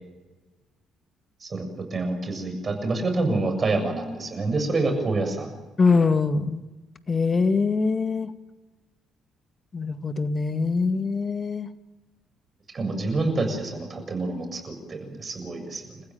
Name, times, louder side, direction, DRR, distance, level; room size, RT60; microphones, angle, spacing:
voice 1, 1.4-5.6 12.7-16.0, right 2 dB, 40° right, 5 dB, 7.2 m, -27 dB
voice 2, 5.8-6.6 7.1-8.3 9.7-11.7, left 4 dB, 35° left, 10 dB, 2.0 m, -23 dB
30.0 x 15.5 x 9.1 m, 1.2 s
hypercardioid pair, 50°, 0 cm